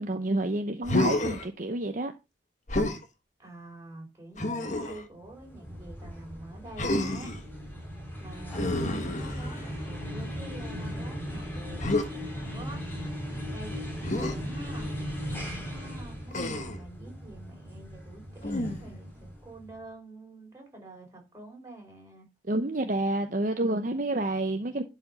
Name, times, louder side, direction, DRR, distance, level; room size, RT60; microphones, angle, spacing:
voice 1, 0.0-2.1 22.5-24.8, right 2 dB, 45° right, 0.8 m, -29 dB
Human voice, 0.8-1.5 2.7-3.0 4.4-5.0 6.8-7.4 8.5-9.8 11.8-12.1 14.0-14.4 16.3-16.8 18.4-19.0, left 1 dB, 40° left, 1.4 m, -29 dB
voice 2, 3.4-7.4 8.2-13.1 13.5-14.9 15.3-22.3, right 2 dB, 15° right, 4.4 m, -47 dB
sound 1, 5.2-19.7, equal, 10° left, 3.4 m, -38 dB
11.5 x 5.1 x 5.4 m
head